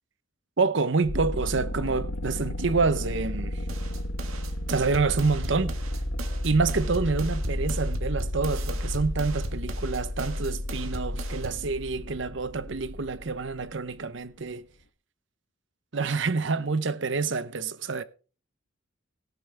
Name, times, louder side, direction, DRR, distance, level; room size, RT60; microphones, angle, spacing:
voice 1, 0.6-3.6 4.7-5.8 6.4-14.6 15.9-18.0, right 4 dB, 60° right, 0.8 m, -27 dB
sound 1, 1.0-13.7, left 1 dB, 75° left, 1.2 m, -32 dB
sound 2, 3.7-11.7, right 3 dB, 85° right, 1.7 m, -41 dB
17.5 x 9.5 x 3.4 m
head